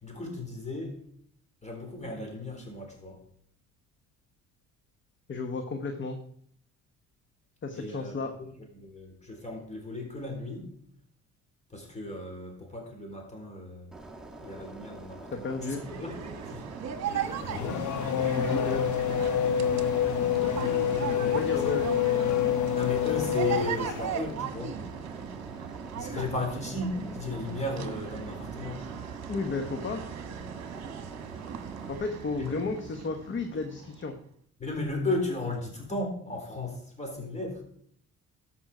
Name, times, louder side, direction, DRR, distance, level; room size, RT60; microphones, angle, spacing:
voice 1, 0.0-1.0 1.6-3.2 7.7-8.1 8.4-8.5 8.8-10.7 11.7-13.9 14.4-16.1 16.5-16.6 17.5-17.9 21.1-21.7 22.7-24.8 26.0-28.8 32.4-32.6 34.6-37.6, left 2 dB, 25° left, 2 dB, 3.8 m, -35 dB
voice 2, 5.3-6.2 7.6-8.4 15.3-15.8 18.4-18.8 21.3-21.9 26.1-26.3 28.1-28.3 29.3-30.0 31.9-34.2, left 3 dB, 40° left, 6 dB, 1.1 m, -33 dB
sound 1, 13.9-32.0, right 2 dB, ahead, 1.8 m, -46 dB
sound 2, 15.6-34.1, right 8 dB, 60° right, 1.2 m, -38 dB
Race car auto racing / Accelerating revving vroom, 17.1-24.3, left 9 dB, 75° left, 0.9 m, -27 dB
13.0 x 5.7 x 4.9 m, 0.63 s
cardioid pair, 90°, 30 cm